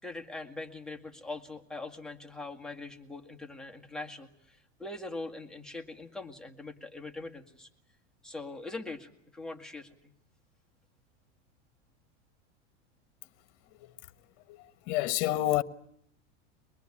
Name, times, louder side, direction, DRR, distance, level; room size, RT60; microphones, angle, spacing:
voice 1, 0.0-7.7 8.2-10.1, left 2 dB, ahead, 2.0 m, -42 dB
voice 2, 14.5-15.6, left 16 dB, 50° left, 1.4 m, -29 dB
24.0 x 20.5 x 9.8 m
supercardioid pair, 145°, 35 cm